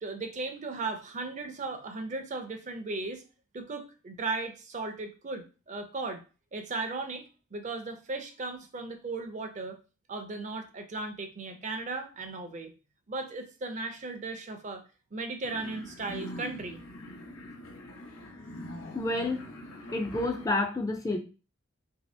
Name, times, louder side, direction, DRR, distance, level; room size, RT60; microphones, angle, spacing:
voice 1, 0.0-3.2 3.5-6.2 6.5-9.8 10.1-12.7 13.1-14.8 15.1-16.8, right 3 dB, 35° right, 7 dB, 0.5 m, -36 dB
sound 1, 15.4-20.5, equal, 85° left, 0.7 m, -43 dB
voice 2, 18.9-19.4 19.9-21.2, left 2 dB, 15° left, 3 dB, 0.4 m, -29 dB
2.9 x 2.7 x 3.2 m, 0.33 s
head